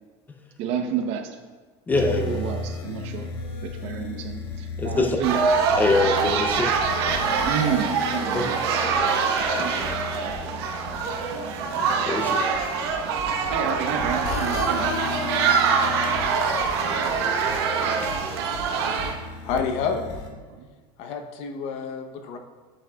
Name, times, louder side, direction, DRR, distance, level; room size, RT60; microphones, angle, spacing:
voice 1, 0.6-1.4 2.0-3.3 3.6-5.5 7.4-8.6 9.5-9.8 10.3-10.4 13.5-14.9 17.2-17.3 20.5-20.7, right 7 dB, 50° right, 5 dB, 0.7 m, -30 dB
sound 1, 1.9-20.3, left 3 dB, 75° left, 1.2 m, -35 dB
voice 2, 1.9-2.4 4.8-5.2 5.8-6.7 8.3-8.4 12.1-12.4 18.0-18.1, left 3 dB, 15° left, 4 dB, 0.5 m, -23 dB
sound 2, 5.2-19.1, right 5 dB, 85° right, 0.9 m, -24 dB
voice 3, 19.4-20.1 21.0-22.4, left 6 dB, 55° left, 5 dB, 0.7 m, -29 dB
8.7 x 7.2 x 2.2 m, 1.4 s
supercardioid pair, 155°, 13 cm